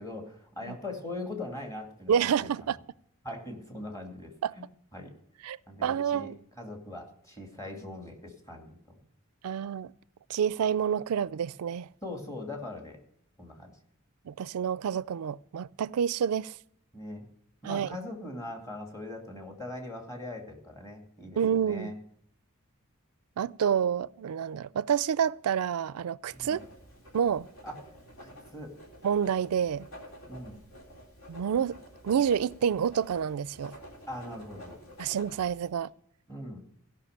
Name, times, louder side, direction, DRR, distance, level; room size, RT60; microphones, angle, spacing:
voice 1, 0.0-2.5 3.2-4.7 4.9-5.1 5.7-6.3 6.6-9.0 12.0-13.0 13.4-13.7 16.9-17.3 17.6-22.0 26.3-26.6 27.6-27.7 28.2-28.7 30.3-30.6 34.1-34.8 36.3-36.6, left 1 dB, 15° left, 2.3 m, -41 dB
voice 2, 2.1-2.8 4.4-4.5 5.4-6.4 9.4-9.9 10.3-11.9 14.3-16.6 17.6-18.0 21.4-21.9 23.4-26.6 27.1-27.5 29.0-29.9 31.3-31.8 32.0-33.7 35.0-35.9, right 8 dB, 85° right, 0.4 m, -28 dB
Writing, 26.3-35.7, equal, 65° left, 3.5 m, -50 dB
16.0 x 5.7 x 6.6 m
head